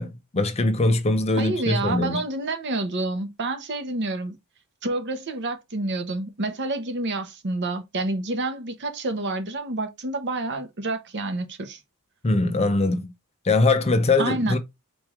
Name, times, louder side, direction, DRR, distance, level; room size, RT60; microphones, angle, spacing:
voice 1, 0.0-2.2 12.2-13.1 13.5-14.6, left 2 dB, 30° left, 0.6 m, -22 dB
voice 2, 1.3-4.4 4.8-11.8 14.2-14.6, right 2 dB, 55° right, 0.9 m, -28 dB
4.4 x 3.1 x 3.6 m
head